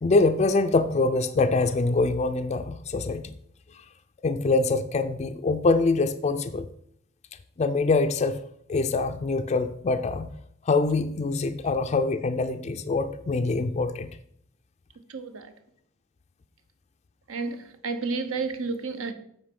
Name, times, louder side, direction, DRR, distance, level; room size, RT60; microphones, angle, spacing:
voice 1, 0.0-3.3 4.2-6.7 7.6-8.4 8.7-10.3 10.7-14.1, left 3 dB, 30° left, 0.4 m, -24 dB
voice 2, 15.1-15.5 17.3-19.1, right 4 dB, 75° right, 0.8 m, -31 dB
8.7 x 4.4 x 5.2 m
head